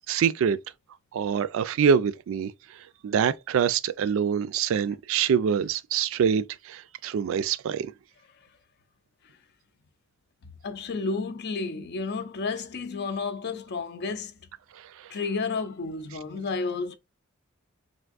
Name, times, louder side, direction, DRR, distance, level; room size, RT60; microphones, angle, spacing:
voice 1, 0.1-0.6 1.1-2.5 3.0-7.9, right 7 dB, 65° right, 0.3 m, -25 dB
voice 2, 10.6-14.3 15.1-17.0, left 4 dB, 50° left, 0.4 m, -31 dB
3.4 x 2.5 x 2.4 m
head